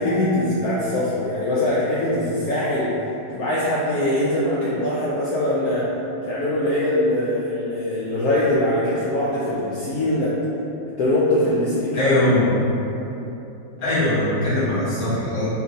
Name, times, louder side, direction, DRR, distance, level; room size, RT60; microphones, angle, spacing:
voice 1, 0.0-3.0 3.3-6.0 6.2-10.4 11.0-12.2, left 1 dB, 85° left, -8 dB, 0.8 m, -22 dB
voice 2, 11.9-12.5 13.8-15.5, left 1 dB, 50° left, -11 dB, 1.5 m, -21 dB
4.6 x 3.1 x 2.6 m, 3.0 s
omnidirectional pair, 2.2 m